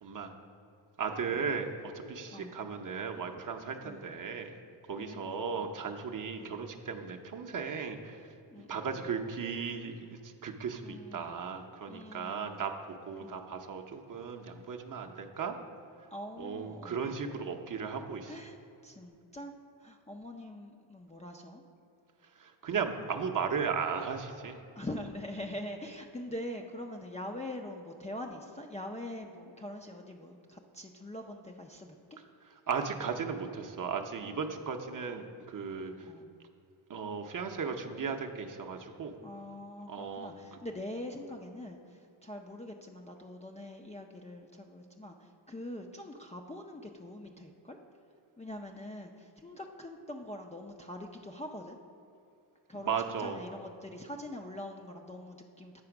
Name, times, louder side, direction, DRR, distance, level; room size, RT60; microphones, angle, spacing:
voice 1, 1.0-4.5 4.9-8.2 8.7-12.7 13.1-15.5 16.4-18.3 22.4-24.6 32.7-35.9 36.9-39.1 39.9-40.3 52.8-53.4, right 6 dB, 40° right, 4 dB, 0.7 m, -36 dB
voice 2, 2.3-2.6 3.8-4.2 5.0-5.7 6.3-6.6 8.5-9.1 10.8-11.4 11.9-12.6 13.2-13.4 16.1-17.1 18.3-19.5 19.8-21.6 24.8-32.0 36.0-36.3 39.2-47.8 48.4-51.8 52.7-55.8, left 1 dB, 15° left, 0 dB, 0.4 m, -44 dB
9.0 x 4.2 x 5.9 m, 2.6 s
cardioid pair, 80°, 49 cm